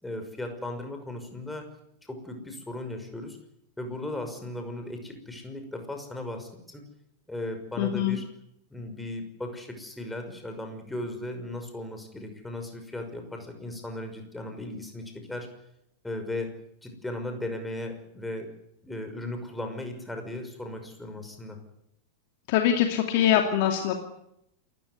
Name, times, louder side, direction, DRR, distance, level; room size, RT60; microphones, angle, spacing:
voice 1, 0.0-1.7 2.0-3.4 3.8-6.8 7.3-8.3 8.7-15.5 16.0-16.5 16.8-18.5 18.8-21.6, left 1 dB, 5° left, 5 dB, 5.9 m, -36 dB
voice 2, 7.8-8.2 22.5-23.9, left 10 dB, 50° left, 4 dB, 2.7 m, -23 dB
28.0 x 15.0 x 9.8 m, 0.79 s
figure-of-eight pair, 90°, 0 cm